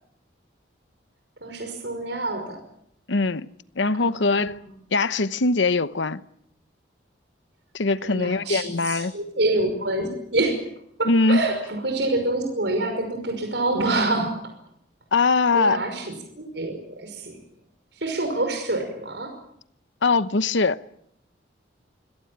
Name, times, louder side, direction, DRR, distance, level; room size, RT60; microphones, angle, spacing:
voice 1, 1.4-2.6 4.0-4.6 8.0-10.6 11.0-14.3 15.5-17.4 17.9-19.3, right 2 dB, 65° right, 5.6 m, -27 dB
voice 2, 3.1-3.5 3.8-4.6 4.9-6.2 7.7-9.1 11.0-11.5 15.1-15.8 20.0-20.8, left 3 dB, 75° left, 0.9 m, -21 dB
25.0 x 17.5 x 8.9 m
head